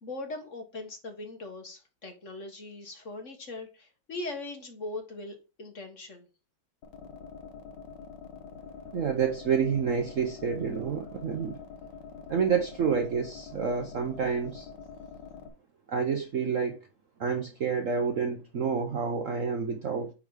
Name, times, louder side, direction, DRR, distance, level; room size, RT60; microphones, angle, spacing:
voice 1, 0.0-6.2, left 2 dB, 40° left, 1.6 m, -40 dB
sound 1, 6.8-15.5, left 6 dB, 65° left, 1.7 m, -45 dB
voice 2, 8.9-11.6 12.3-14.7 15.9-16.8 17.2-20.1, right 6 dB, 55° right, 0.9 m, -29 dB
9.2 x 3.7 x 4.8 m
omnidirectional pair, 2.2 m